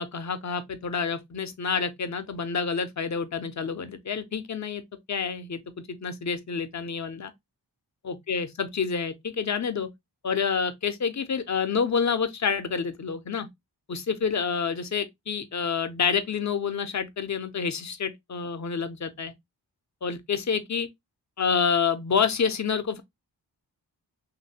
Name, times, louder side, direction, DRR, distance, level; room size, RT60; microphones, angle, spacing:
voice 1, 0.0-4.8 5.1-5.6 5.9-7.3 8.0-9.9 10.2-13.5 13.9-19.3 20.0-20.9 21.4-23.0, left 6 dB, 40° left, 0.5 m, -28 dB
3.1 x 2.6 x 2.7 m
wide cardioid pair, 85°, 43 cm